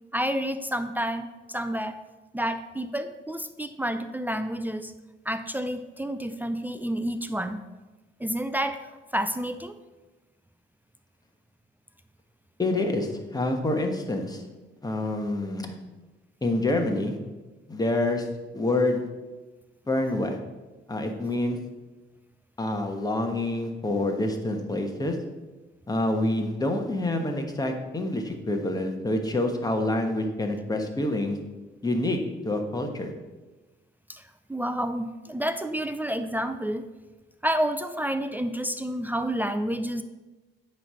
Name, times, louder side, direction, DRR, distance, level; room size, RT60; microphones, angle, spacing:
voice 1, 0.1-2.0 2.3-4.9 5.3-7.6 8.2-8.9 9.1-9.7 34.1-34.2 34.5-36.8 37.4-40.0, equal, 10° right, 9 dB, 0.4 m, -29 dB
voice 2, 12.6-14.4 14.8-15.7 16.4-17.2 17.7-18.3 18.5-19.0 19.9-20.4 20.9-21.6 22.6-25.2 25.9-31.4 31.8-32.2 32.4-33.1, left 2 dB, 20° left, 4 dB, 1.2 m, -27 dB
9.8 x 3.3 x 6.3 m, 1.2 s
cardioid pair, 90°, 20 cm